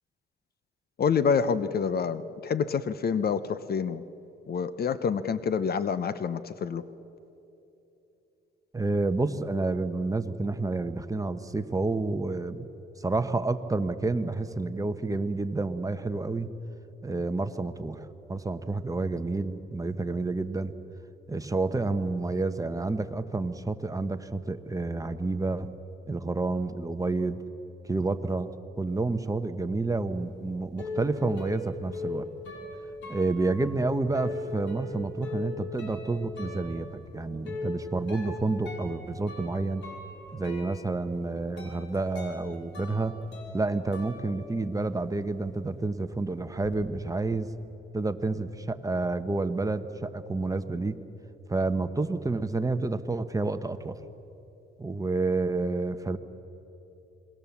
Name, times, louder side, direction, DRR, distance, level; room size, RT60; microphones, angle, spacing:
voice 1, 1.0-4.0 4.5-6.9, left 6 dB, 50° left, 14 dB, 0.9 m, -27 dB
voice 2, 8.7-12.7 13.0-16.5 17.0-20.7 21.3-25.7 26.1-27.4 27.8-28.5 28.8-32.3 33.1-39.8 40.3-43.2 43.5-47.5 47.9-51.0 51.5-54.0 54.8-56.2, right 3 dB, 15° right, 9 dB, 1.1 m, -29 dB
sound 1, 30.2-45.0 45.3-46.7, left 2 dB, 70° left, 5.4 m, -40 dB
27.5 x 21.0 x 7.3 m, 3.0 s
cardioid pair, 90°, 20 cm